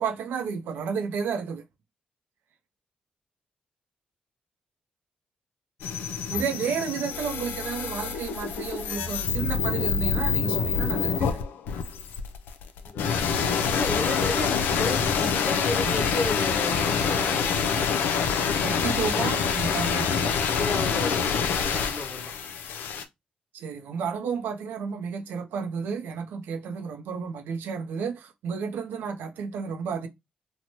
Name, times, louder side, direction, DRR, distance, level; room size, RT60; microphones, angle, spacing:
voice 1, 0.0-1.6 6.3-11.4 18.6-20.5 23.5-30.1, right 6 dB, 80° right, 0.4 m, -32 dB
sound 1, 5.8-23.0, left 6 dB, 85° left, 0.4 m, -26 dB
voice 2, 12.8-18.0 20.6-22.3, left 2 dB, 30° left, 0.9 m, -33 dB
2.7 x 2.1 x 2.9 m
supercardioid pair, 50°, 3 cm